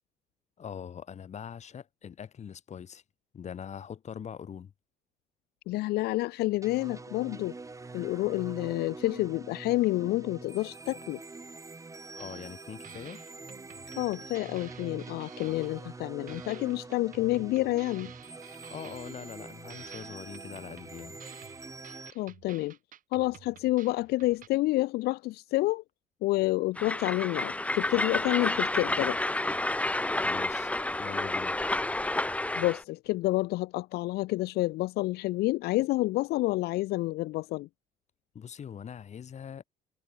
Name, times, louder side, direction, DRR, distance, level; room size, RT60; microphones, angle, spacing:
voice 1, 0.6-3.0 3.3-4.7 12.2-13.2 18.7-21.2 30.2-30.7 31.0-31.6 38.3-39.6, left 8 dB, 40° left, 2.4 m, -42 dB
voice 2, 5.7-7.5 7.9-11.2 14.0-18.1 22.2-22.8 23.1-25.8 26.2-29.2 32.6-37.7, left 19 dB, 75° left, 0.4 m, -29 dB
sound 1, 6.6-22.1, right 3 dB, 20° right, 3.4 m, -45 dB
sound 2, 12.2-12.6 12.8-16.0 16.3-19.4 19.7-24.5, right 10 dB, 50° right, 2.7 m, -53 dB
Train, 26.8-32.8, left 2 dB, 10° left, 0.8 m, -30 dB
cardioid pair, 110°, 17 cm